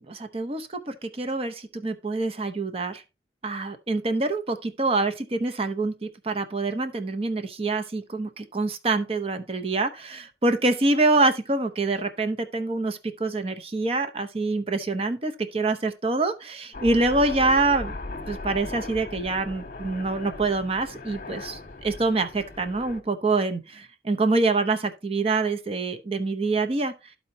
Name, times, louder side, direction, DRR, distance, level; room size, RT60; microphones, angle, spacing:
voice 1, 0.1-3.0 3.4-17.9 18.3-26.9, right 3 dB, 35° right, 0.7 m, -26 dB
Aircraft, 16.7-23.0, left 2 dB, 50° left, 0.9 m, -38 dB
12.5 x 4.3 x 2.8 m
head